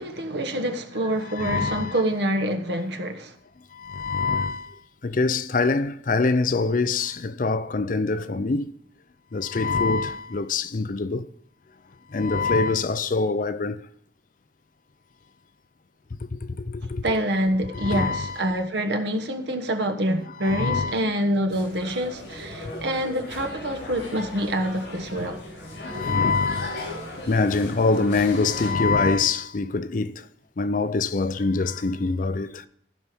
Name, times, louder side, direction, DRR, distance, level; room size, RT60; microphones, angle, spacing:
voice 1, 0.0-3.3 17.0-25.4, equal, 60° right, 1.2 m, -26 dB
voice 2, 1.3-2.0 3.7-8.7 9.3-11.3 12.1-13.8 16.2-17.0 17.7-18.6 20.3-21.1 22.7-22.8 25.7-30.3 30.6-32.7, left 3 dB, 45° left, 0.5 m, -25 dB
sound 1, 21.5-28.7, left 1 dB, 60° left, 5.2 m, -37 dB
14.5 x 5.6 x 6.1 m
head